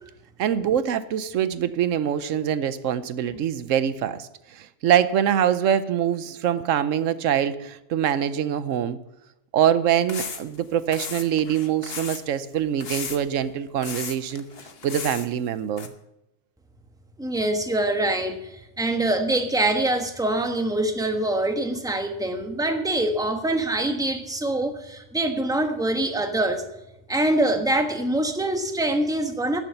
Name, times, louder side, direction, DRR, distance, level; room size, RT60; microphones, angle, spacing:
voice 1, 0.4-9.0 9.5-14.4 14.8-15.9, right 9 dB, 85° right, 14 dB, 1.1 m, -24 dB
sound 1, 10.1-10.6 10.9-12.2 12.8-13.4 13.8-15.3 15.8-15.9, left 5 dB, 55° left, 1.3 m, -35 dB
voice 2, 17.2-26.6 27.1-29.6, right 1 dB, 5° right, 6 dB, 1.1 m, -24 dB
13.0 x 7.2 x 7.9 m, 0.89 s
omnidirectional pair, 1.3 m